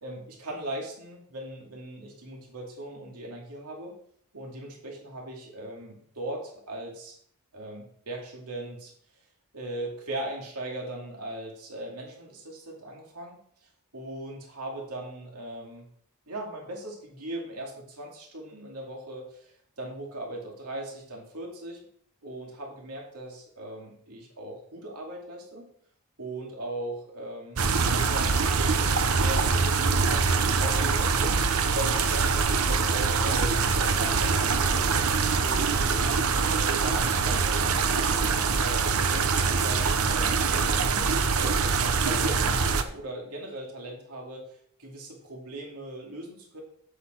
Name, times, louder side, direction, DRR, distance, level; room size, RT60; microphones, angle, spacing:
voice 1, 0.0-3.9 4.3-7.2 7.5-9.2 9.5-15.9 16.3-21.8 22.2-25.7 26.2-27.6 27.9-35.9 36.7-41.6 42.0-46.6, right 1 dB, 90° right, -1 dB, 2.5 m, -39 dB
sound 1, 27.6-42.8, right 5 dB, 70° right, 0.8 m, -24 dB
8.3 x 8.1 x 4.5 m, 0.65 s
head